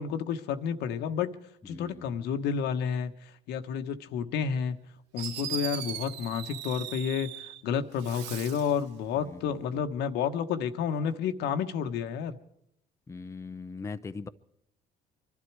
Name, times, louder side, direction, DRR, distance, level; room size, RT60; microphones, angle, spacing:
voice 1, 0.0-1.4 1.7-3.1 3.5-4.8 5.1-7.3 7.6-12.4, left 7 dB, 85° left, 8 dB, 1.2 m, -30 dB
voice 2, 1.6-2.2 9.2-9.9 13.1-14.3, left 4 dB, 15° left, 10 dB, 0.7 m, -41 dB
Fireworks, 4.8-4.9 5.2-7.6 8.0-8.8, right 10 dB, 85° right, 1.0 m, -39 dB
25.0 x 12.0 x 4.7 m, 0.76 s
cardioid pair, 110°, 17 cm